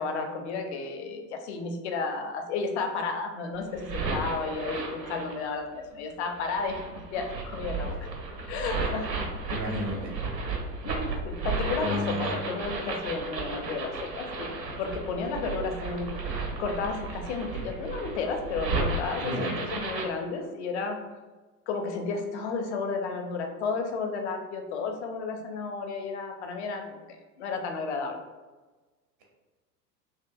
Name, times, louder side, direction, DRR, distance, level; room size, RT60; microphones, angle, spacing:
voice 1, 0.0-6.8 7.1-8.1 8.5-9.1 9.9-10.0 10.8-14.5 14.8-16.1 16.6-21.0 21.7-28.2, left 4 dB, 45° left, 4 dB, 0.5 m, -32 dB
sound 1, 3.5-5.5 6.3-20.1, right 3 dB, 85° right, 0.6 m, -34 dB
voice 2, 9.5-10.1 11.8-12.3 19.2-19.6, left 1 dB, 20° right, -1 dB, 0.4 m, -31 dB
2.7 x 2.4 x 2.2 m, 1.3 s
figure-of-eight pair, 85°, 49 cm